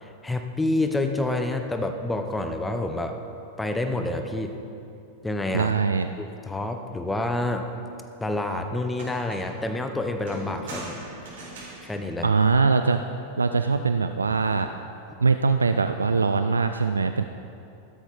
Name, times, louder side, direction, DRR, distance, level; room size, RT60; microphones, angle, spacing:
voice 1, 0.0-3.2 3.6-4.6 5.2-5.7 6.2-7.7 8.2-11.0 11.8-12.3 15.1-15.2, left 2 dB, 10° left, 5 dB, 1.0 m, -28 dB
voice 2, 5.5-6.1 12.2-13.0 13.4-14.7 15.2-17.2, right 4 dB, 75° right, 9 dB, 0.4 m, -22 dB
sound 1, 8.9-9.7 10.3-13.0 14.2-14.7, right 2 dB, 55° right, 3.9 m, -41 dB
15.5 x 13.0 x 4.2 m, 2.7 s
figure-of-eight pair, 90°, 0 cm